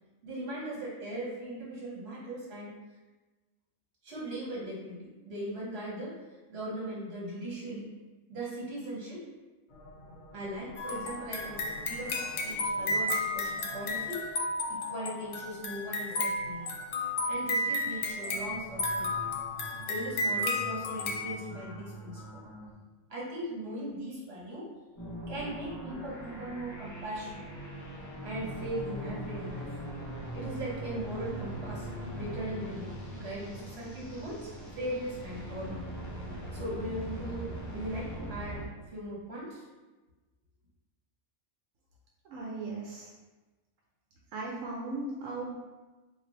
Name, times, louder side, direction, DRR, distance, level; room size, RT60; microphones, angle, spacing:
voice 1, 0.2-2.7 4.0-6.2 6.5-7.9 8.3-9.3 10.3-14.2 14.7-16.7 17.3-19.1 19.9-22.2 23.1-24.7 25.3-27.5 28.2-29.7 30.3-34.5 34.8-35.9 36.5-38.6 38.9-39.6, right 1 dB, 55° right, -6 dB, 1.4 m, -39 dB
sound 1, 9.7-22.7, equal, 45° left, 0.7 m, -49 dB
sound 2, 10.8-21.3, left 2 dB, 75° left, 0.9 m, -33 dB
sound 3, 25.0-38.7, right 1 dB, 25° left, 0.4 m, -40 dB
voice 2, 42.2-43.1 44.3-45.5, right 2 dB, 85° right, -3 dB, 1.0 m, -37 dB
3.2 x 2.6 x 3.9 m, 1.2 s
omnidirectional pair, 1.3 m